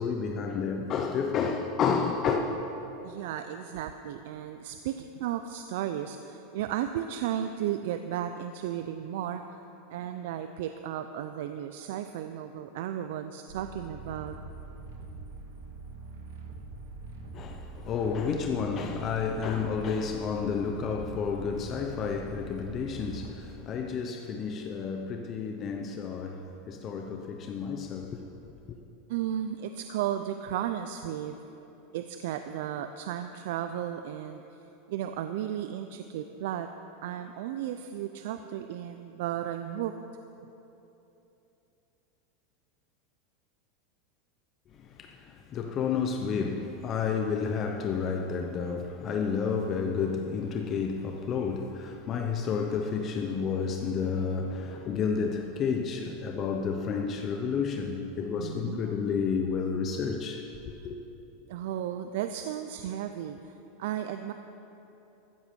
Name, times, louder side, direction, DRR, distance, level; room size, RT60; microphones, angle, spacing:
voice 1, 0.0-2.4 17.3-28.2 28.7-28.8 44.8-61.0, left 6 dB, 30° left, 0.8 m, -31 dB
voice 2, 3.0-9.6 9.9-14.4 21.0-21.2 29.1-31.4 31.9-34.4 34.9-36.7 37.0-39.9 58.4-58.9 61.5-63.5 63.8-64.3, right 10 dB, 70° right, 0.5 m, -34 dB
sound 1, 13.5-23.3, right 4 dB, 85° right, 2.0 m, -43 dB
14.5 x 8.0 x 6.9 m
supercardioid pair, 140°, 0 cm